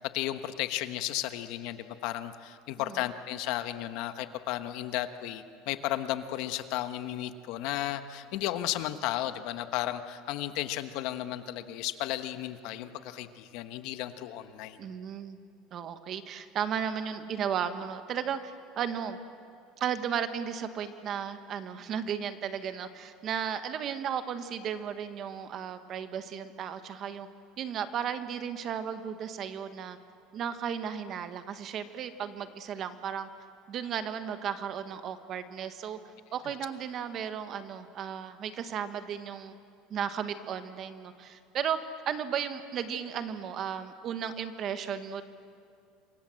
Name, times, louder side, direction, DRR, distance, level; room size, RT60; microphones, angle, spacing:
voice 1, 0.0-14.8, left 13 dB, 60° left, 10 dB, 1.2 m, -34 dB
voice 2, 14.8-15.4 15.7-19.2 19.8-27.3 27.6-30.0 30.3-33.3 33.7-36.0 36.3-39.5 39.9-41.8 42.0-45.2, right 8 dB, 35° right, 10 dB, 1.3 m, -35 dB
27.0 x 24.0 x 7.7 m, 2.4 s
cardioid pair, 160°, 0 cm